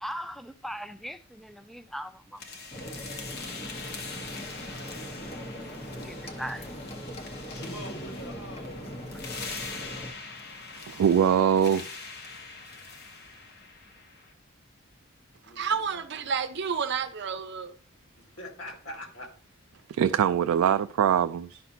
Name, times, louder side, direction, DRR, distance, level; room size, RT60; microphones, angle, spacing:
voice 1, 0.0-2.4 5.5-5.6 6.0-6.8 11.7-11.8, equal, ahead, 0.4 m, -39 dB
sound 1, 2.4-14.3, left 4 dB, 50° left, 1.1 m, -43 dB
sound 2, 2.7-10.1, equal, 30° left, 1.0 m, -40 dB
voice 2, 7.5-8.9 15.5-16.0 18.2-19.3, left 1 dB, 75° left, 2.1 m, -43 dB
voice 3, 10.8-11.9 19.9-21.6, right 8 dB, 90° right, 0.3 m, -23 dB
voice 4, 15.4-17.7, right 6 dB, 55° right, 0.7 m, -30 dB
11.0 x 5.8 x 2.7 m
head